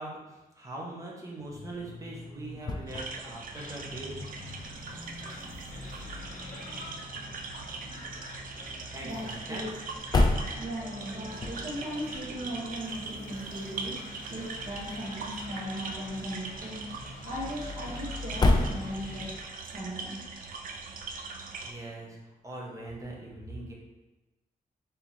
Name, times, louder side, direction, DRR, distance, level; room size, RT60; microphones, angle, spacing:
voice 1, 0.0-4.2 8.5-9.7 10.4-10.7 21.6-22.2 22.4-23.7, right 2 dB, 20° right, -3 dB, 0.9 m, -42 dB
sound 1, 1.4-19.5, left 2 dB, 25° left, 0.4 m, -35 dB
sound 2, 2.9-21.7, right 4 dB, 65° right, 0.5 m, -41 dB
sound 3, 3.5-19.4, left 2 dB, 60° left, 1.0 m, -45 dB
voice 2, 9.0-9.8 10.6-14.0 14.3-16.9 17.2-19.3 19.7-20.2 21.3-21.4, equal, 45° right, -5 dB, 1.2 m, -38 dB
3.4 x 2.9 x 4.2 m, 1.1 s
wide cardioid pair, 145°, 16 cm